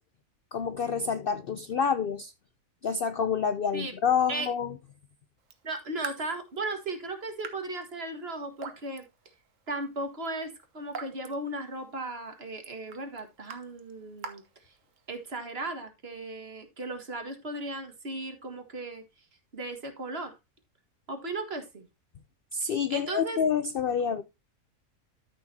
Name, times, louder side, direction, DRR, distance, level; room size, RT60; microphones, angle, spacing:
voice 1, 0.5-2.3 2.8-4.7 22.5-24.2, left 6 dB, 60° left, 0.6 m, -28 dB
Raindrop / Drip, 5.4-15.3, right 5 dB, 65° right, 1.5 m, -47 dB
voice 2, 5.6-9.0 9.7-14.7 15.1-19.0 19.5-20.4 21.1-21.9 22.6-23.4, right 2 dB, 45° right, 1.9 m, -36 dB
13.0 x 6.5 x 2.8 m
omnidirectional pair, 1.5 m